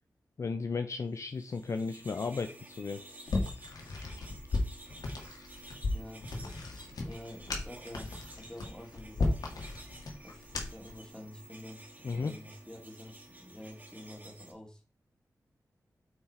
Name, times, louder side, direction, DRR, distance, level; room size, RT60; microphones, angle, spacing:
voice 1, 0.4-3.0 12.0-12.3, left 4 dB, 50° left, 7 dB, 0.6 m, -34 dB
sound 1, 1.3-14.5, right 1 dB, 25° right, 2.3 m, -52 dB
sound 2, 3.3-10.9, left 3 dB, 90° left, 2.0 m, -35 dB
voice 2, 5.9-9.4 10.2-14.8, left 1 dB, 10° left, 2 dB, 2.3 m, -49 dB
8.4 x 4.8 x 4.3 m, 0.37 s
wide cardioid pair, 115°, 6 cm